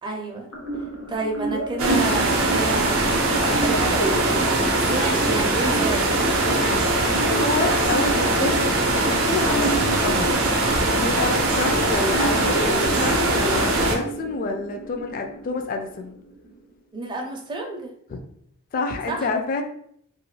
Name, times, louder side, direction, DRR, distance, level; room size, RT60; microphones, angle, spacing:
voice 1, 0.0-0.5 1.1-4.3 4.9-6.1 16.9-17.9 19.1-19.3, right 2 dB, 20° right, 1 dB, 0.5 m, -30 dB
sound 1, 0.5-16.5, right 1 dB, 80° left, 0.7 m, -30 dB
sound 2, 1.8-14.0, right 2 dB, 65° right, 0.6 m, -21 dB
voice 2, 6.5-10.4 10.9-16.2 18.1-18.2 18.7-19.6, left 3 dB, 40° left, 4 dB, 0.3 m, -28 dB
2.4 x 2.2 x 3.1 m, 0.67 s
head